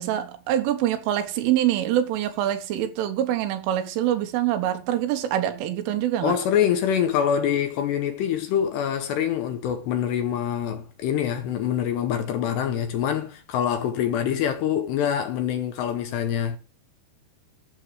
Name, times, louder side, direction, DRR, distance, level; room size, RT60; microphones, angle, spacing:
voice 1, 0.0-6.4, right 12 dB, 80° right, 3.8 m, -25 dB
voice 2, 6.2-16.6, left 9 dB, 80° left, 2.7 m, -25 dB
14.5 x 7.1 x 4.8 m
omnidirectional pair, 5.7 m